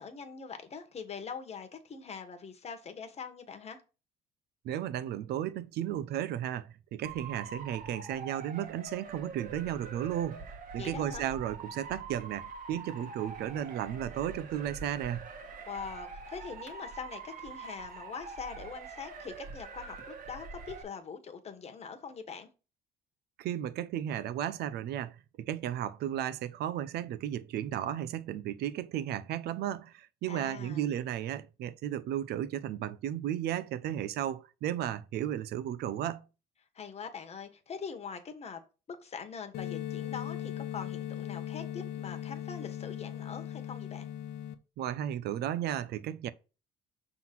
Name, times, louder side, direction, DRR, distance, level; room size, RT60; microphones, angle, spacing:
voice 1, 0.0-3.8 10.8-11.3 15.7-22.5 30.3-30.9 36.7-38.6 38.9-44.1, left 6 dB, 40° left, 1.3 m, -43 dB
voice 2, 4.6-15.3 23.4-36.2 44.8-46.3, right 11 dB, 70° right, 0.6 m, -34 dB
Motor vehicle (road) / Siren, 7.0-20.8, right 4 dB, 50° right, 1.6 m, -45 dB
sound 1, 39.5-44.5, left 11 dB, 75° left, 0.9 m, -38 dB
5.9 x 3.8 x 5.9 m
cardioid pair, 110°, 17 cm